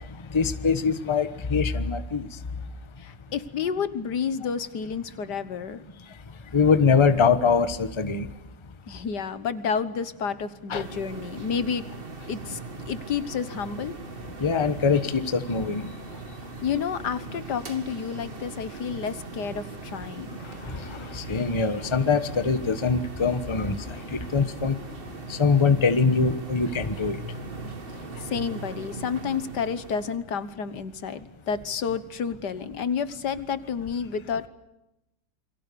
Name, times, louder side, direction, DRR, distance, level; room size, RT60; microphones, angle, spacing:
voice 1, 0.3-2.3 6.5-8.3 10.7-10.8 14.4-15.9 21.1-23.8 24.1-24.7 25.3-27.2, left 5 dB, 20° left, 11 dB, 1.1 m, -23 dB
voice 2, 3.0-5.8 8.9-11.9 12.3-12.6 12.9-14.0 16.6-20.4 28.2-34.5, left 6 dB, 70° left, 13 dB, 1.8 m, -30 dB
sound 1, 10.7-30.2, right 3 dB, 30° right, 2.0 m, -40 dB
28.5 x 23.0 x 6.9 m, 0.91 s
omnidirectional pair, 1.9 m